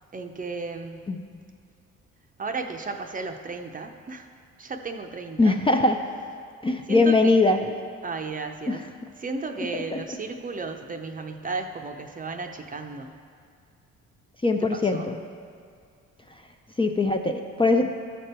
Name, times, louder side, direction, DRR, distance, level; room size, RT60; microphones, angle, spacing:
voice 1, 0.1-1.0 2.4-4.3 4.6-5.6 6.9-7.3 8.0-8.8 9.2-13.2 14.6-15.1, right 3 dB, 25° right, 5 dB, 0.6 m, -34 dB
voice 2, 5.4-6.0 6.6-7.6 8.7-8.8 9.7-10.0 14.4-15.2 16.3-16.4 16.8-17.9, left 3 dB, 15° left, 4 dB, 0.5 m, -21 dB
13.0 x 5.2 x 4.3 m, 2.2 s
cardioid pair, 90°, 30 cm